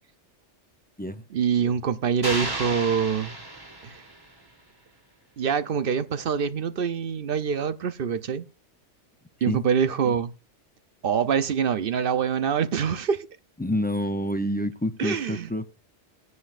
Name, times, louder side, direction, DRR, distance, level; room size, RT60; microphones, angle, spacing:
voice 1, 1.3-3.4 3.8-4.0 5.4-8.5 9.4-10.3 11.0-13.3 15.0-15.5, right 7 dB, 55° right, 0.8 m, -25 dB
sound 1, 2.2-4.4, right 1 dB, 20° right, 1.3 m, -33 dB
voice 2, 13.6-15.7, equal, 15° left, 0.4 m, -27 dB
18.5 x 9.6 x 2.5 m
omnidirectional pair, 1.2 m